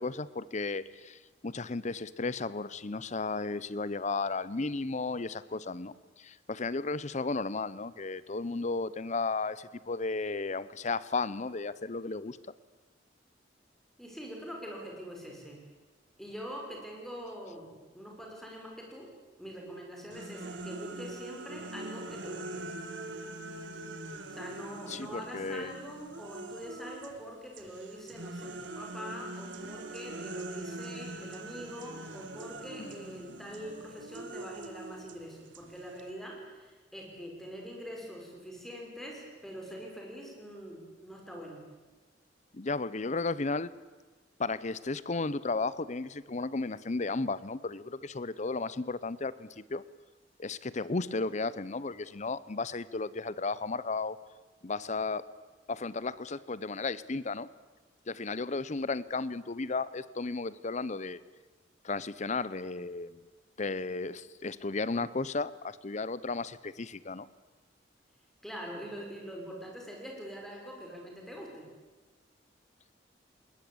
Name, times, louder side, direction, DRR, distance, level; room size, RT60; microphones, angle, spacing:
voice 1, 0.0-5.9 6.2-12.4 24.9-25.7 32.8-32.9 42.5-43.7 44.4-49.8 50.4-54.2 54.6-55.2 55.7-57.5 58.1-61.2 61.8-63.1 63.6-67.3, left 3 dB, 40° left, 18 dB, 0.7 m, -34 dB
voice 2, 14.0-15.6 16.2-19.1 19.4-22.7 24.3-41.6 68.4-71.7, equal, ahead, -1 dB, 5.5 m, -44 dB
sound 1, 20.1-27.2 27.5-36.1, right 2 dB, 85° right, 2.0 m, -43 dB
20.5 x 20.0 x 8.7 m, 1.3 s
head